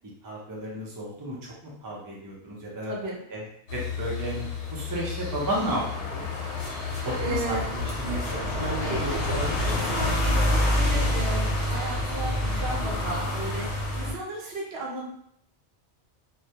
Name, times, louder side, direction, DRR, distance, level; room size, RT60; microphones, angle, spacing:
voice 1, 0.2-2.9 3.3-3.4 3.7-6.3 7.0-9.5 11.1-11.4, right 1 dB, 30° right, -3 dB, 0.3 m, -33 dB
sound 1, 3.7-14.1, left 1 dB, 75° left, 0.9 m, -28 dB
voice 2, 7.2-7.7 8.6-15.0, right 2 dB, 65° right, -2 dB, 0.9 m, -35 dB
2.2 x 2.1 x 2.7 m, 0.67 s
omnidirectional pair, 1.2 m